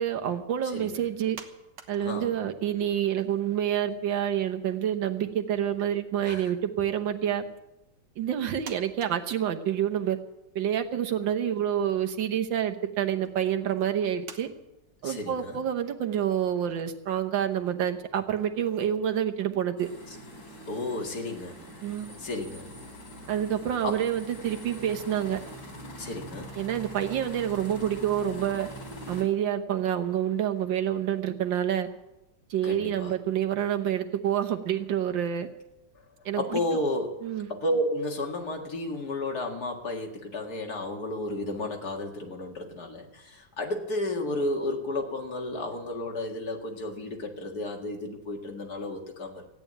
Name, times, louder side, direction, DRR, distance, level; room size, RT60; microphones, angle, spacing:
voice 1, 0.0-1.4 1.9-7.4 8.2-10.2 10.6-14.5 15.0-19.9 21.8-22.1 23.3-25.4 26.6-28.7 29.1-31.9 32.5-35.5 36.3-36.6 37.2-37.5, right 10 dB, 85° right, 7 dB, 1.8 m, -28 dB
sound 1, 1.3-2.6 2.9-4.2 4.5-4.6 5.5-5.9 6.7-7.1 7.9-8.0 8.6-10.1 10.6-10.7 11.1-11.7 12.4-12.7 13.2-13.3 14.2-14.4, right 6 dB, 65° right, 1.8 m, -48 dB
voice 2, 2.0-2.3 6.2-6.5 15.0-15.6 20.7-21.7 22.2-22.7 23.8-24.0 26.0-26.5 32.6-33.1 36.3-37.1 37.5-49.4, left 1 dB, 55° left, 2 dB, 2.4 m, -32 dB
sound 2, 19.8-29.2, equal, 80° left, 5.0 m, -43 dB
15.5 x 9.3 x 9.2 m, 0.97 s
omnidirectional pair, 2.0 m